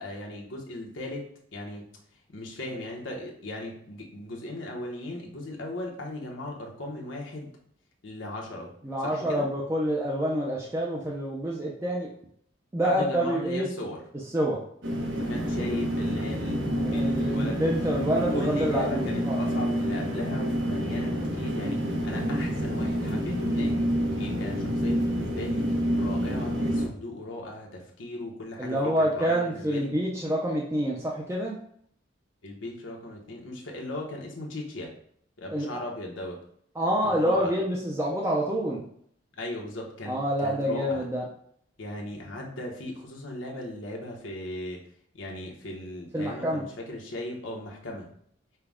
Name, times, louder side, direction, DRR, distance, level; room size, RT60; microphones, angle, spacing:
voice 1, 0.0-1.9 2.3-7.5 8.0-8.7 9.0-9.5 12.8-14.0 15.1-17.6 18.1-23.8 24.2-29.9 32.4-34.9 35.4-36.4 37.0-37.5 39.4-41.1 41.8-44.8 45.1-48.1, left 1 dB, 85° left, -1 dB, 1.1 m, -37 dB
voice 2, 8.8-12.1 12.7-13.7 14.3-14.6 16.5-19.4 28.6-31.6 35.5-35.8 36.8-38.8 40.1-41.2 46.1-46.6, equal, 15° right, -3 dB, 0.5 m, -27 dB
sound 1, 14.8-26.9, equal, 75° right, 1.0 m, -28 dB
5.7 x 2.3 x 3.5 m, 0.65 s
head